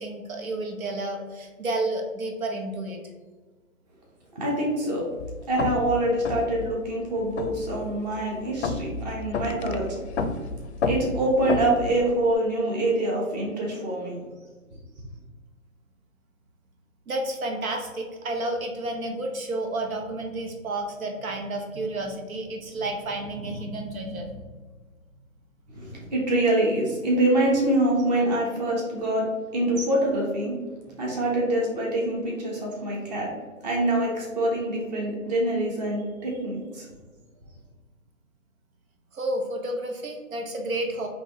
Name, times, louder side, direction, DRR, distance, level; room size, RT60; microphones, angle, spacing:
voice 1, 0.0-3.0 17.1-24.4 39.1-41.1, right 2 dB, 90° right, 2 dB, 1.1 m, -31 dB
voice 2, 4.3-5.1 5.5-10.0 10.8-14.1 25.7-30.6 31.0-33.3 33.6-36.9, right 1 dB, 30° right, -3 dB, 1.2 m, -25 dB
sound 1, 5.2-12.3, left 4 dB, 55° left, 0.5 m, -31 dB
4.7 x 3.0 x 3.7 m, 1.3 s
hypercardioid pair, 160°, 41 cm